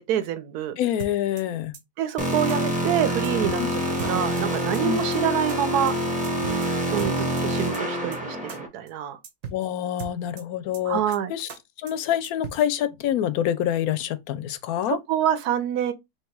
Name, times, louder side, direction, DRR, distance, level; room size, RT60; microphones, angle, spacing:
voice 1, 0.1-0.8 2.0-3.8 4.1-5.9 6.9-9.2 10.8-11.3 14.9-15.9, right 10 dB, 75° right, 1.2 m, -26 dB
voice 2, 0.8-1.8 3.6-3.8 4.8-5.0 9.5-11.0 11.3-11.5 11.8-15.0, left 10 dB, 75° left, 1.0 m, -26 dB
sound 1, 1.0-1.4 1.7-1.8 2.1-2.2 2.5-2.6 2.9-3.0 3.2-3.6 4.0-4.4 4.7-4.8 5.1-5.2 5.5-5.6 5.9-6.0 6.2-6.7 7.0-7.4 7.7-7.8 8.1-8.2 8.5-8.6 8.9-9.0 9.2-9.6 10.0-10.4 10.7-10.8 11.1-11.2 11.5-11.6 11.9-12.0 12.2-12.6, right 6 dB, 55° right, 1.0 m, -37 dB
sound 2, 2.2-8.7, equal, 5° right, 0.8 m, -26 dB
3.2 x 2.8 x 4.4 m
omnidirectional pair, 1.7 m